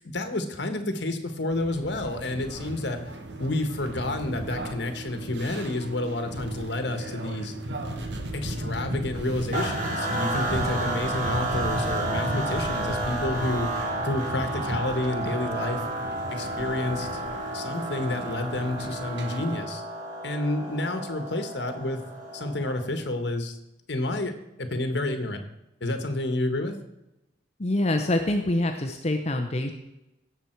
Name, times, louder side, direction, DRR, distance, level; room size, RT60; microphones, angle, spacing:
voice 1, 0.1-3.0 3.4-7.5 8.3-15.8 16.3-17.2 17.5-19.8 20.2-22.0 22.3-23.6 23.9-24.3 24.6-25.4 25.8-26.7, left 2 dB, 65° left, 7 dB, 1.4 m, -29 dB
sound 1, 1.5-19.6, right 1 dB, 65° right, 1.3 m, -36 dB
sound 2, 9.5-22.9, right 1 dB, 40° right, 2.5 m, -32 dB
voice 2, 27.6-29.7, left 1 dB, 35° left, 5 dB, 0.8 m, -25 dB
16.5 x 7.0 x 4.5 m, 0.91 s
head